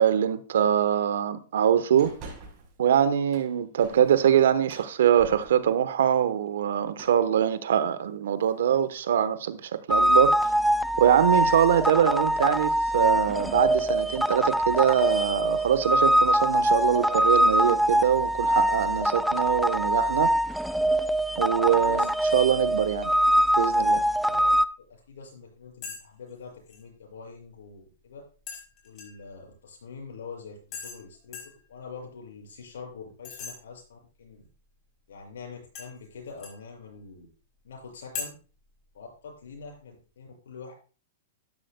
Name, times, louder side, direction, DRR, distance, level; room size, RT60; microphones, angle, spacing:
voice 1, 0.0-2.1 2.8-10.4 11.0-20.3 21.4-23.1 23.6-24.0, right 9 dB, 75° right, 1.0 m, -23 dB
sound 1, 2.0-2.8 3.2-5.9 6.9-7.4 8.4-8.8 10.1-13.6 14.0-14.1 15.7-15.9 16.2-16.5 16.8-17.0 17.4-18.4, right 3 dB, 35° right, 5.6 m, -50 dB
sound 2, 9.9-24.6, equal, ahead, 0.4 m, -23 dB
voice 2, 21.7-22.1 23.3-23.4 24.3-24.5 24.8-28.2 28.8-31.4 31.7-34.4 35.1-37.3 37.6-38.3 38.9-40.7, left 5 dB, 75° left, 6.7 m, -44 dB
sound 3, 25.8-26.0 26.3-26.8 28.5-29.3 30.7-31.0 31.3-31.6 33.2-33.5 35.7-36.6 38.1-38.3, left 5 dB, 35° left, 4.9 m, -39 dB
12.0 x 12.0 x 2.3 m
hypercardioid pair, 130°, 0 cm